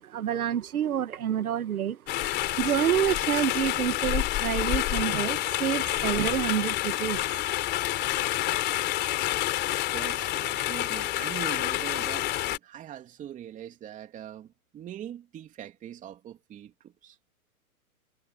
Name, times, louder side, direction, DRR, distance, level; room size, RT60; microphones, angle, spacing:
voice 1, 0.0-7.4, right 10 dB, 70° right, 1.6 m, -28 dB
sound 1, 2.1-12.6, left 15 dB, 25° left, 3.5 m, -28 dB
voice 2, 9.9-17.2, right 10 dB, 15° right, 2.9 m, -42 dB
hypercardioid pair, 145°, 45 cm